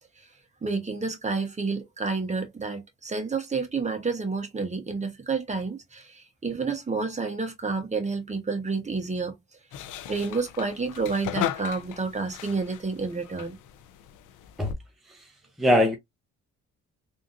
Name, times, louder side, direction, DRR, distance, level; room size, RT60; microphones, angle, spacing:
voice 1, 0.6-9.4 10.1-13.6, right 4 dB, 25° right, 1.1 m, -29 dB
sound 1, 9.7-14.7, left 11 dB, 85° left, 0.6 m, -37 dB
voice 2, 15.6-16.0, left 1 dB, ahead, 0.7 m, -22 dB
3.5 x 2.8 x 2.5 m
cardioid pair, 90°, 30 cm